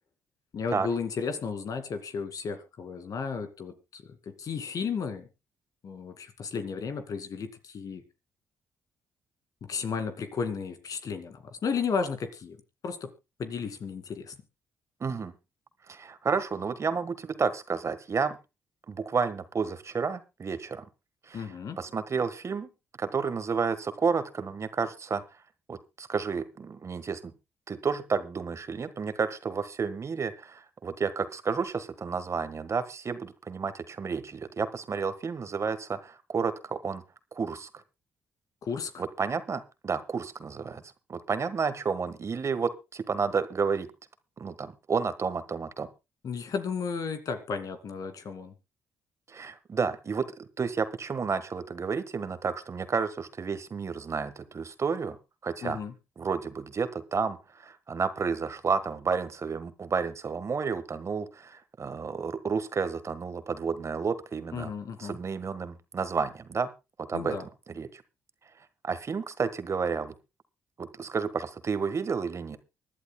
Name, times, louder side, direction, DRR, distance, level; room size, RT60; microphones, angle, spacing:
voice 1, 0.5-5.3 5.8-8.0 9.7-12.6 12.8-13.1 13.4-14.4 21.3-21.8 38.6-39.0 46.2-48.5 55.6-55.9 64.5-65.2 67.1-67.4, left 5 dB, 60° left, 8 dB, 2.4 m, -33 dB
voice 2, 15.0-15.3 15.9-18.4 18.9-20.8 21.3-21.4 21.8-22.7 23.0-25.2 25.7-27.3 27.7-37.0 37.3-37.7 39.0-40.8 41.1-43.9 44.4-45.9 49.3-55.2 55.4-55.8 56.2-64.7 65.0-66.7 67.1-67.3 67.7-68.0 68.8-70.1 70.8-72.6, right 5 dB, 45° right, 13 dB, 1.5 m, -31 dB
24.5 x 11.0 x 2.3 m, 0.27 s
hypercardioid pair, 50°, 7 cm